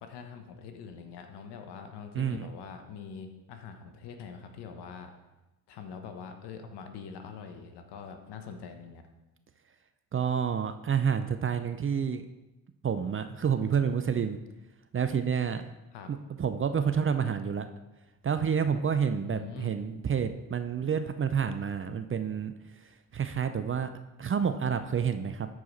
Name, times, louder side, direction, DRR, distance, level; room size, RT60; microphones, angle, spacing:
voice 1, 0.0-5.1 5.7-9.0 15.9-16.1 19.2-19.8, left 6 dB, 60° left, 6 dB, 1.2 m, -44 dB
voice 2, 2.1-2.5 10.1-12.2 12.8-14.4 14.9-15.6 16.1-17.7 18.2-22.5 22.8-23.9 24.2-25.5, right 7 dB, 30° right, 9 dB, 0.6 m, -29 dB
13.5 x 4.8 x 4.1 m, 1.0 s
hypercardioid pair, 45°, 46 cm